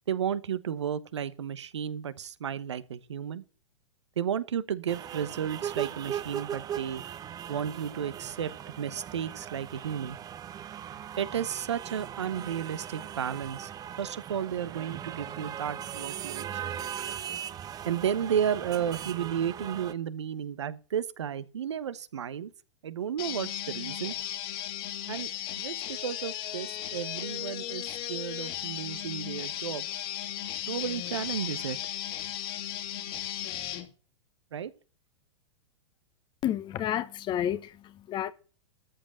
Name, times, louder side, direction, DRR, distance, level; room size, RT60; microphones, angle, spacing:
voice 1, 0.1-3.4 4.2-7.0 7.5-8.5 8.8-10.2 11.2-13.7 14.0-17.4 17.8-22.5 22.8-24.1 25.1-25.3 25.6-29.8 30.7-31.8 34.5-34.7, right 8 dB, 75° right, 1.0 m, -33 dB
sound 1, 4.9-19.9, right 9 dB, 25° right, 0.9 m, -39 dB
sound 2, 23.2-33.8, left 12 dB, 55° left, 3.0 m, -36 dB
voice 2, 36.4-38.3, left 11 dB, 30° left, 1.1 m, -31 dB
13.5 x 5.2 x 7.4 m
hypercardioid pair, 105°, 15 cm